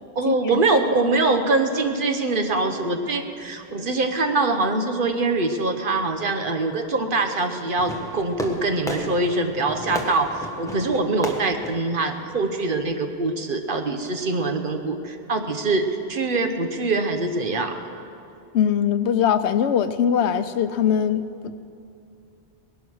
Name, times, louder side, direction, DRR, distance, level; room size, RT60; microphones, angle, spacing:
voice 1, 0.2-17.8, right 3 dB, 55° right, 6 dB, 1.2 m, -23 dB
Fireworks, 7.8-12.8, left 1 dB, 5° left, 1.3 m, -34 dB
voice 2, 18.5-21.5, left 8 dB, 85° left, 12 dB, 0.9 m, -21 dB
19.0 x 11.5 x 6.4 m, 2.6 s
omnidirectional pair, 1.1 m